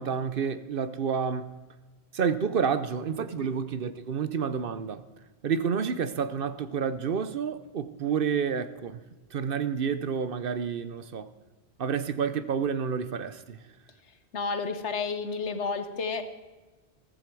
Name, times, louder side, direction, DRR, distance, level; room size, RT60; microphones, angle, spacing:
voice 1, 0.0-1.5 2.1-5.0 5.4-9.0 9.3-11.3 11.8-13.6, right 6 dB, 60° right, 0.9 m, -29 dB
voice 2, 14.3-16.2, left 4 dB, 85° left, 1.5 m, -31 dB
14.5 x 14.5 x 4.6 m
omnidirectional pair, 1.1 m